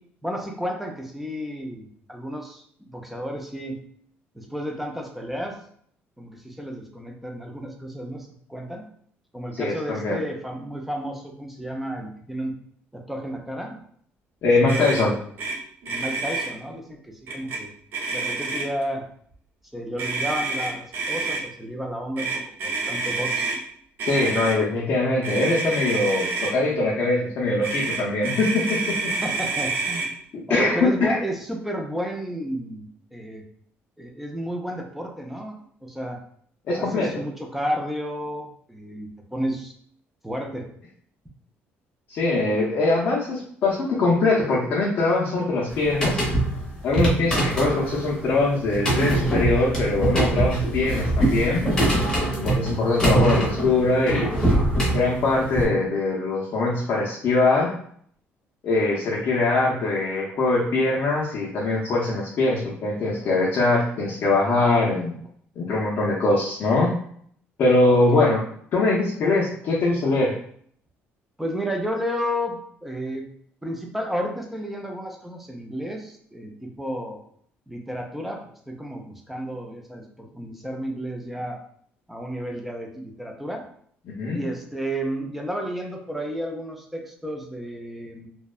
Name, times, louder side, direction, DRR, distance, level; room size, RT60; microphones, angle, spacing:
voice 1, 0.2-3.8 4.3-5.6 6.2-8.8 9.3-12.6 12.9-13.8 14.7-15.3 15.9-17.7 18.1-19.0 19.7-22.3 22.6-23.5 29.2-30.1 30.5-33.4 34.0-36.2 36.7-39.7 40.2-40.7 67.9-68.3 71.4-73.3 73.6-77.2 77.7-81.6 82.1-83.6 84.3-88.3, equal, 5° right, 2 dB, 0.4 m, -32 dB
voice 2, 9.5-10.2 14.4-15.2 24.0-29.1 30.5-31.2 36.7-37.1 42.1-46.2 46.8-51.7 52.4-54.3 54.9-57.8 58.6-65.2 65.6-66.9 67.6-68.4 68.7-70.4 84.1-84.4, left 2 dB, 50° left, -4 dB, 0.5 m, -22 dB
Motor vehicle (road), 14.7-15.1 15.4-15.6 15.8-16.5 17.3-17.6 17.9-18.8 20.0-21.4 22.2-23.6 24.0-24.6 25.2-26.5 27.6-30.1, right 3 dB, 50° right, 0.6 m, -28 dB
sound 1, 45.7-55.7, right 2 dB, 15° left, 0.8 m, -23 dB
2.7 x 2.1 x 2.3 m, 0.62 s
cardioid pair, 155°, 5 cm